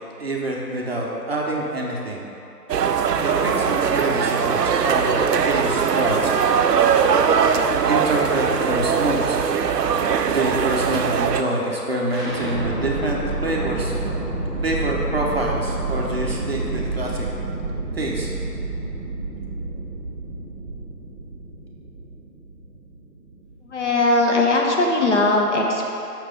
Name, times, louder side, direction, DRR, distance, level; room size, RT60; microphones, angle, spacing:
voice 1, 0.2-2.3 3.2-6.3 7.9-9.4 10.2-14.0 14.6-17.3 17.9-18.3, right 1 dB, 40° right, -3 dB, 0.8 m, -26 dB
sound 1, 2.7-11.4, right 7 dB, 80° right, 0.6 m, -20 dB
sound 2, 12.1-24.0, right 2 dB, 20° right, 1.6 m, -29 dB
voice 2, 23.7-25.9, left 2 dB, 50° left, -1 dB, 0.8 m, -19 dB
6.3 x 4.7 x 5.0 m, 2.9 s
figure-of-eight pair, 165°, 48 cm